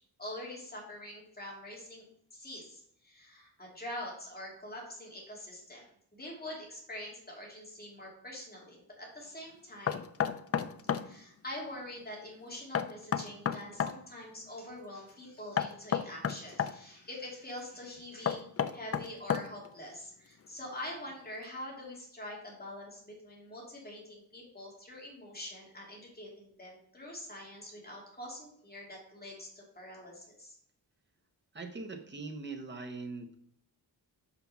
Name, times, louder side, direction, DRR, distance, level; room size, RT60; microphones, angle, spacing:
voice 1, 0.2-10.0 11.0-18.4 18.7-30.5, left 1 dB, 20° left, -3 dB, 2.7 m, -45 dB
Knock, 9.9-11.1 12.7-14.0 15.6-16.7 18.3-19.7, left 8 dB, 35° left, 0.4 m, -31 dB
voice 2, 31.5-33.3, right 3 dB, 25° right, 4 dB, 1.0 m, -41 dB
6.0 x 5.8 x 5.7 m, 0.65 s
wide cardioid pair, 155°, 41 cm